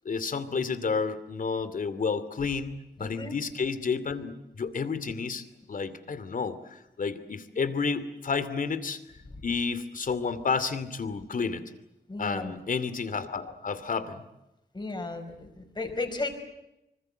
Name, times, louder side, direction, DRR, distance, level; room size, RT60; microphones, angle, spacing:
voice 1, 0.0-9.0 9.4-11.7 12.2-14.3, left 5 dB, 50° left, 13 dB, 2.5 m, -31 dB
voice 2, 3.0-3.4 12.1-12.5 14.7-16.4, left 2 dB, 25° left, 6 dB, 5.2 m, -34 dB
26.0 x 24.5 x 7.9 m, 0.90 s
wide cardioid pair, 140°, 18 cm